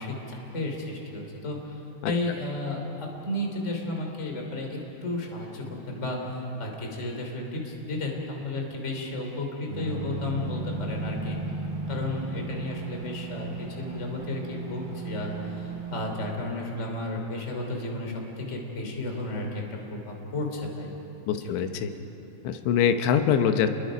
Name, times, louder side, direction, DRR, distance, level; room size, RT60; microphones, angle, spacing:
voice 1, 0.0-1.7 2.0-11.4 11.9-19.6 19.9-20.9 21.3-21.7, left 2 dB, 20° left, 1 dB, 2.5 m, -33 dB
sound 1, 9.7-16.3, right 3 dB, 35° right, 3.8 m, -35 dB
voice 2, 21.3-21.9 22.4-23.7, left 8 dB, 90° left, 8 dB, 3.2 m, -23 dB
30.0 x 22.0 x 5.1 m, 3.0 s
omnidirectional pair, 5.0 m